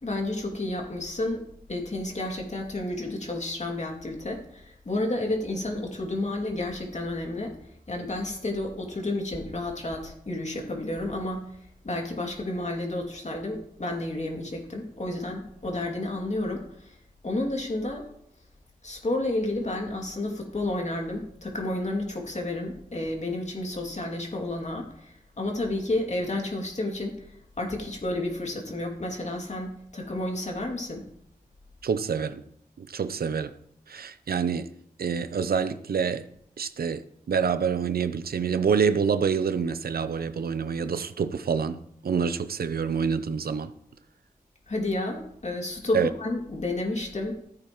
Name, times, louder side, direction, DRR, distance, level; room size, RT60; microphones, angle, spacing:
voice 1, 0.0-7.6 7.9-11.4 11.8-17.0 17.2-18.1 18.8-27.3 27.6-31.1 44.7-47.4, left 2 dB, 50° left, 2.5 m, -31 dB
voice 2, 31.8-32.4 32.8-33.5 33.9-34.7 35.0-36.3 36.6-43.7 45.9-46.1, right 6 dB, 85° right, 0.6 m, -27 dB
14.5 x 8.6 x 3.1 m
wide cardioid pair, 65°, 15 cm